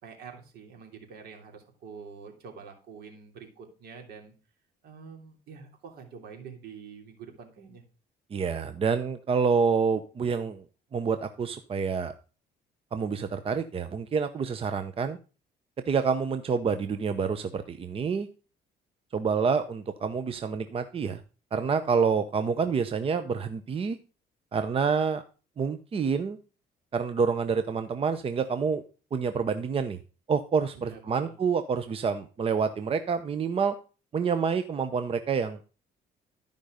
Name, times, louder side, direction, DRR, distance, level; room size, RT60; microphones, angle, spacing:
voice 1, 0.0-4.3 4.8-7.8 30.7-31.4, right 6 dB, 70° right, 3 dB, 3.0 m, -46 dB
voice 2, 8.3-10.6 10.9-12.1 12.9-15.2 15.9-18.3 19.1-21.2 21.5-24.0 24.5-25.2 25.6-26.4 26.9-28.8 29.1-30.0 30.3-33.7 34.1-35.6, right 5 dB, 35° right, 10 dB, 0.7 m, -27 dB
13.0 x 5.3 x 5.0 m, 0.35 s
cardioid pair, 110°, 17 cm